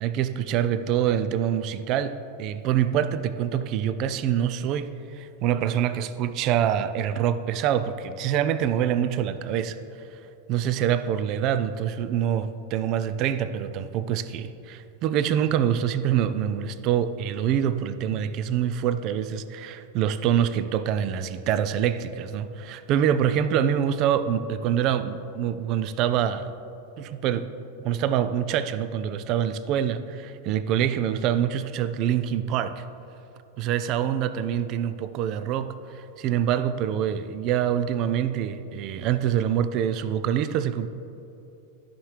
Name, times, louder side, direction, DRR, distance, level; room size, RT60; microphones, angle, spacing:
voice 1, 0.0-9.8 10.5-26.5 27.0-27.5 27.8-32.8 33.6-40.9, right 9 dB, 40° right, 13 dB, 0.4 m, -25 dB
13.0 x 5.7 x 3.3 m, 2.9 s
figure-of-eight pair, 90°, 0 cm